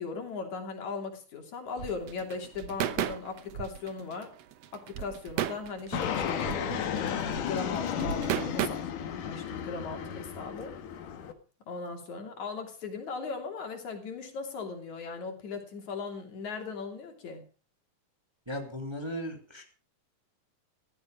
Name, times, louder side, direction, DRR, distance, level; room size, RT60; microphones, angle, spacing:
voice 1, 0.0-4.3 4.7-8.8 9.1-10.7 11.7-17.4, left 4 dB, 65° left, 4 dB, 4.2 m, -38 dB
sound 1, 1.8-8.7, right 11 dB, 65° right, 1.8 m, -34 dB
Fixed-wing aircraft airplane, 5.9-11.3, left 8 dB, 85° left, 3.1 m, -33 dB
voice 2, 18.5-19.6, equal, 10° right, 3 dB, 2.7 m, -36 dB
15.0 x 15.0 x 5.0 m, 0.36 s
omnidirectional pair, 3.5 m